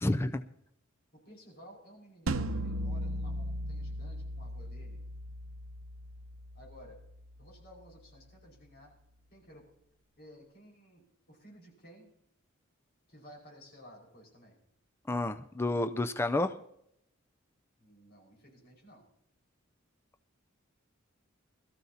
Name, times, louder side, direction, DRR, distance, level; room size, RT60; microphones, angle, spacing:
voice 1, 0.0-0.4 15.1-16.6, left 2 dB, 10° left, 9 dB, 0.4 m, -30 dB
voice 2, 1.1-5.0 6.5-7.0 7.4-8.9 9.3-9.6 10.2-12.1 13.1-14.6 17.8-19.0, equal, 50° left, -1 dB, 5.2 m, -55 dB
sound 1, 2.3-7.3, right 1 dB, 75° right, 0.8 m, -37 dB
21.0 x 13.5 x 2.8 m, 0.74 s
head